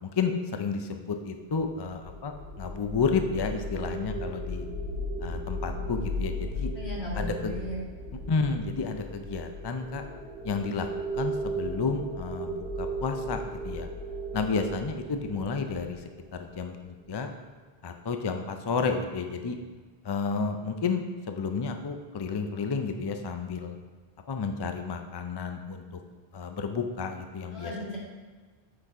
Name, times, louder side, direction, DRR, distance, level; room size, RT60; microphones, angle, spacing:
voice 1, 0.0-4.7 5.2-6.7 7.1-7.6 8.3-10.0 10.4-10.9 11.1-13.9 14.3-17.3 17.8-19.6 20.0-23.8 24.3-26.0 26.3-27.7, left 5 dB, 35° left, 6 dB, 0.4 m, -31 dB
sound 1, 1.7-16.8, equal, 65° left, 1.9 m, -36 dB
voice 2, 6.8-7.8 27.5-28.0, equal, 85° left, -6 dB, 2.3 m, -36 dB
7.9 x 5.9 x 3.6 m, 1.4 s
omnidirectional pair, 1.0 m